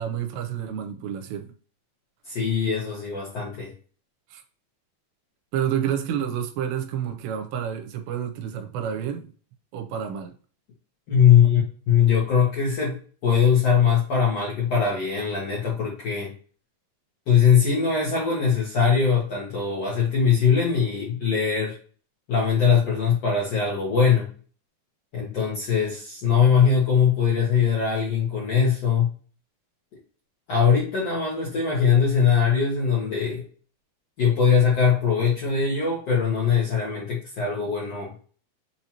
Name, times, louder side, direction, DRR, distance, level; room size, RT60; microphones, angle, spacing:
voice 1, 0.0-1.5 4.3-4.4 5.5-9.3 9.7-10.3, right 9 dB, 90° right, 2.9 m, -29 dB
voice 2, 2.2-3.7 11.1-11.6 11.9-16.3 17.3-21.7 22.3-24.3 25.1-29.1 30.5-33.4 34.2-38.1, left 7 dB, 70° left, 1.5 m, -21 dB
6.6 x 2.8 x 2.9 m
omnidirectional pair, 5.0 m